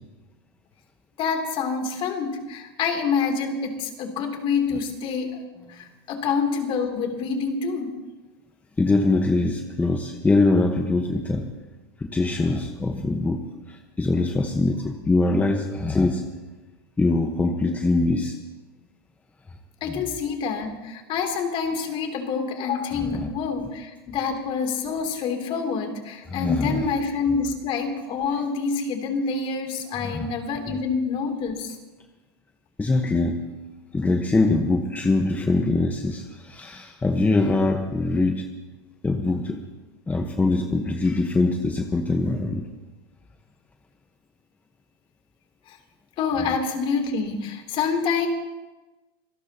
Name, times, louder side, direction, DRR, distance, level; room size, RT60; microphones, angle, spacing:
voice 1, 1.2-7.9 19.8-31.8 45.7-45.8 46.2-48.3, left 5 dB, 45° left, 4 dB, 3.1 m, -27 dB
voice 2, 8.8-11.5 12.0-13.4 13.7-16.2 17.0-18.3 19.9-20.0 23.0-23.3 26.3-26.8 30.0-30.3 30.7-30.8 32.8-33.4 33.9-38.4 39.0-39.6 40.1-42.6, left 2 dB, 10° left, 4 dB, 1.2 m, -23 dB
26.0 x 17.5 x 2.9 m, 1.1 s
hypercardioid pair, 110°, 13 cm